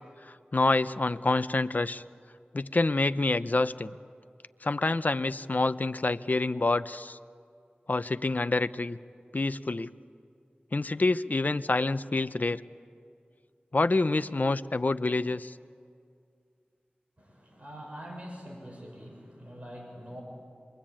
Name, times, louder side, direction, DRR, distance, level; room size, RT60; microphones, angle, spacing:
voice 1, 0.5-2.0 2.5-4.0 4.6-7.2 7.9-9.0 9.3-9.9 10.7-12.6 13.7-15.5, left 2 dB, 50° left, 12 dB, 0.8 m, -27 dB
voice 2, 17.2-20.2, equal, 35° right, 0 dB, 6.8 m, -44 dB
27.0 x 23.0 x 8.9 m, 2.3 s
wide cardioid pair, 45°, 4 cm